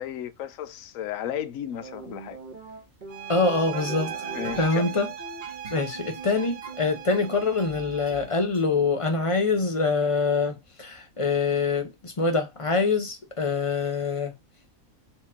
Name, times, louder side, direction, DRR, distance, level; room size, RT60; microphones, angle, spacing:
voice 1, 0.0-2.4 4.3-4.9, left 10 dB, 80° left, 1.0 m, -34 dB
sound 1, 1.8-8.6, right 3 dB, 35° right, 1.5 m, -41 dB
sound 2, 3.1-8.4, right 9 dB, 85° right, 1.0 m, -39 dB
voice 2, 3.3-4.1 4.6-5.1 5.7-14.3, left 4 dB, 30° left, 0.7 m, -25 dB
4.4 x 3.0 x 3.5 m
omnidirectional pair, 1.4 m